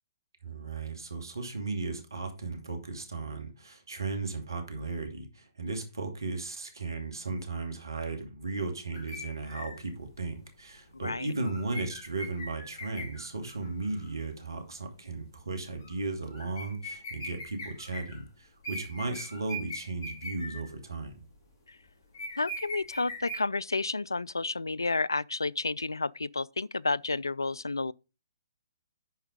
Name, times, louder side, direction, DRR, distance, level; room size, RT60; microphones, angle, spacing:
voice 1, 0.4-21.2, right 3 dB, 75° right, 2.5 m, -36 dB
sound 1, 8.9-14.2 14.6-14.8 15.6-16.0 16.3-18.2 18.6-20.7 21.1-21.5 22.1-23.4, equal, 35° left, 4.1 m, -42 dB
voice 2, 22.4-27.9, left 3 dB, 80° left, 0.3 m, -31 dB
10.5 x 4.6 x 5.1 m
figure-of-eight pair, 125°, 2 cm